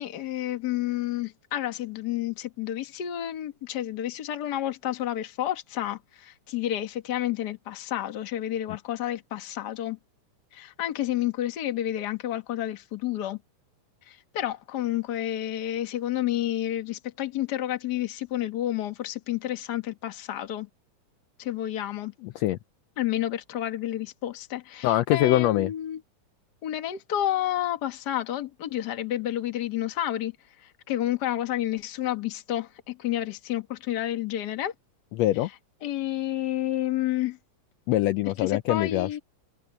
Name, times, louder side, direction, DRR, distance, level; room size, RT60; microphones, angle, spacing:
voice 1, 0.0-10.0 10.5-13.4 14.1-20.7 21.4-22.1 23.0-26.0 26.6-30.3 30.6-34.7 35.8-37.4 38.4-39.2, left 12 dB, 50° left, 1.2 m, -30 dB
voice 2, 22.2-22.6 24.8-25.7 35.2-35.5 37.9-39.2, left 14 dB, 85° left, 1.5 m, -23 dB
omnidirectional pair, 3.7 m